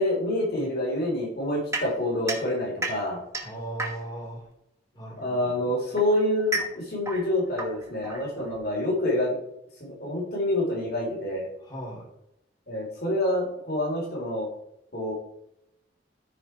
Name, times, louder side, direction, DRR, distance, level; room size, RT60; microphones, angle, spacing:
voice 1, 0.0-3.2 5.2-9.3 9.8-11.5 12.7-14.5 14.9-15.1, left 1 dB, 60° left, -3 dB, 4.1 m, -27 dB
sound 1, 1.7-4.3 5.3-8.7, right 2 dB, 15° right, 1.5 m, -34 dB
voice 2, 3.4-4.4 4.9-5.8 8.4-8.5 11.6-12.0, right 1 dB, 25° left, -4 dB, 4.2 m, -38 dB
14.0 x 5.3 x 4.7 m, 0.81 s
head